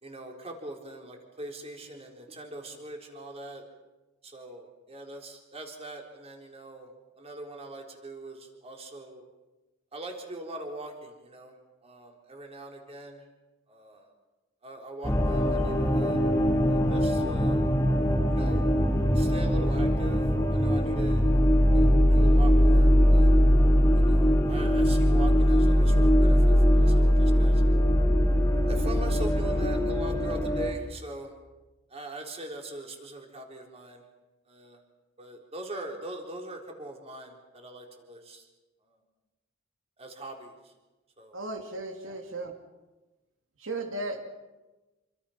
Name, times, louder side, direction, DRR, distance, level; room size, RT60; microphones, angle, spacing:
voice 1, 0.0-3.6 4.2-6.9 7.2-9.2 9.9-11.5 11.8-13.2 13.7-14.1 14.6-16.2 16.7-17.6 18.3-18.6 19.1-20.2 20.5-21.2 21.6-23.3 23.9-27.6 28.7-31.3 31.9-34.0 34.5-34.8 35.2-38.4 40.0-40.5 41.2-41.4 42.0-42.2, right 1 dB, 30° right, 2 dB, 3.9 m, -42 dB
sound 1, 15.0-30.7, equal, 15° left, 2.4 m, -21 dB
voice 2, 41.3-42.5 43.6-44.2, right 2 dB, 85° right, 3 dB, 2.6 m, -35 dB
27.5 x 25.5 x 5.8 m, 1.1 s
head